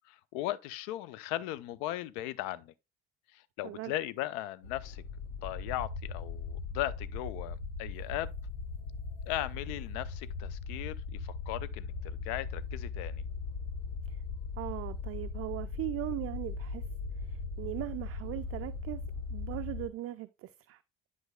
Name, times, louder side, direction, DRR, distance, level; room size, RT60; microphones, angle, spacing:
voice 1, 0.1-2.7 3.3-5.0 5.4-8.3 9.3-13.2, left 14 dB, 60° left, 0.6 m, -37 dB
sound 1, 4.6-19.9, left 4 dB, 80° left, 1.2 m, -39 dB
voice 2, 14.6-16.8 17.2-19.0 19.3-20.8, right 16 dB, 35° right, 0.4 m, -39 dB
10.5 x 5.3 x 2.3 m
figure-of-eight pair, 50°, 41 cm